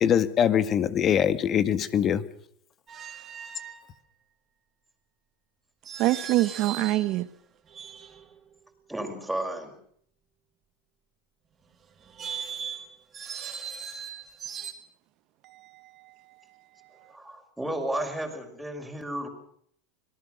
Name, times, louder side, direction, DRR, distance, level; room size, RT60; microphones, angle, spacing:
voice 1, 0.0-2.2, left 9 dB, 35° left, 1.7 m, -23 dB
sound 1, 2.9-3.8 5.9-7.1 7.7-8.4 12.0-14.7, right 7 dB, 25° right, 3.3 m, -38 dB
voice 2, 6.0-7.3 15.4-16.1 17.0-17.1, right 16 dB, 50° right, 1.4 m, -26 dB
voice 3, 8.9-9.7 17.1-19.3, right 1 dB, 5° right, 5.7 m, -33 dB
25.5 x 19.0 x 6.6 m
supercardioid pair, 130°, 0 cm